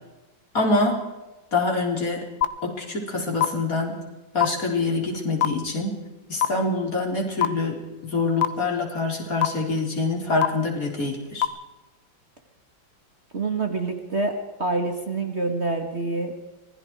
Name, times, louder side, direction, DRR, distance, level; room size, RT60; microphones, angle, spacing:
voice 1, 0.5-1.0 1.5-2.3 2.6-4.0 4.3-6.0 6.3-11.5, left 3 dB, 45° left, 0 dB, 4.5 m, -25 dB
sound 1, 2.4-2.5 3.4-3.5 4.4-4.5 5.4-5.5 6.4-6.5 7.4-7.5 8.4-8.5 9.4-9.5 10.4-10.5 11.4-11.5, left 11 dB, 70° left, 1.7 m, -18 dB
voice 2, 13.3-14.3 14.6-16.3, right 3 dB, 35° right, 4 dB, 2.1 m, -26 dB
25.5 x 21.0 x 4.8 m, 1.1 s
omnidirectional pair, 2.1 m